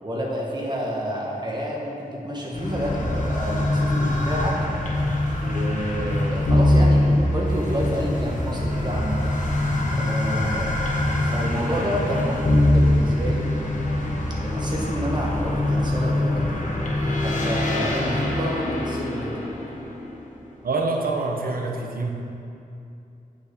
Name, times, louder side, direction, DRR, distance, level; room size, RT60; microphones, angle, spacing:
voice 1, 0.0-4.5 5.4-9.4 9.9-10.7 11.3-13.5 14.4-16.6 17.2-19.4, equal, 30° right, -3 dB, 1.6 m, -29 dB
sound 1, 2.5-20.5, left 1 dB, 60° left, 1.3 m, -23 dB
voice 2, 20.6-22.1, right 3 dB, 75° right, 2 dB, 1.0 m, -26 dB
8.1 x 6.9 x 5.2 m, 2.7 s
wide cardioid pair, 140°, 15 cm